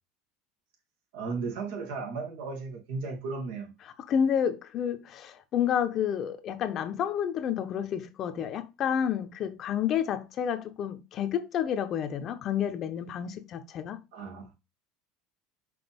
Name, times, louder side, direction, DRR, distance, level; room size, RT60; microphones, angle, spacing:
voice 1, 1.1-3.7 14.1-14.5, right 4 dB, 85° right, 2.5 m, -35 dB
voice 2, 4.1-14.0, left 8 dB, 40° left, 0.8 m, -30 dB
6.0 x 4.7 x 3.6 m
supercardioid pair, 130°, 0 cm